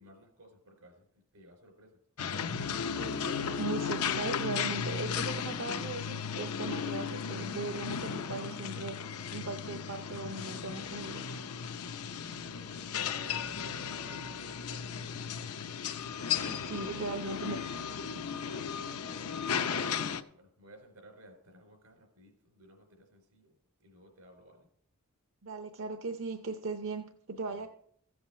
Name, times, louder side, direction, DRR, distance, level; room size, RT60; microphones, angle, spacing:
voice 1, 0.0-2.0 12.4-16.3 16.7-17.5 18.2-19.9 20.3-24.7 27.4-27.7, equal, 85° right, 4.1 m, -57 dB
sound 1, 2.2-20.2, left 6 dB, 85° left, 0.7 m, -35 dB
voice 2, 2.8-9.0 9.3-11.3 16.3-17.6 25.4-27.7, right 3 dB, 60° right, 0.7 m, -38 dB
15.0 x 7.9 x 4.3 m
head